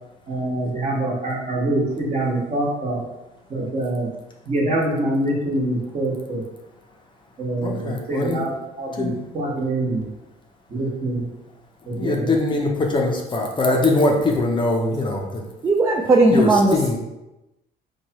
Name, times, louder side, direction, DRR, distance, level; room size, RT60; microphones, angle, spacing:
voice 1, 0.3-3.0 3.5-4.1 4.4-6.4 7.4-10.0 10.7-11.3 11.9-12.3, right 1 dB, 40° right, -3 dB, 1.2 m, -25 dB
voice 2, 7.6-8.5 8.9-9.2 12.0-15.4 16.3-17.0, left 2 dB, 30° left, 0 dB, 0.6 m, -22 dB
voice 3, 15.6-17.0, right 2 dB, 20° right, 0 dB, 0.3 m, -17 dB
4.5 x 2.3 x 2.8 m, 0.97 s
cardioid pair, 110°, 17 cm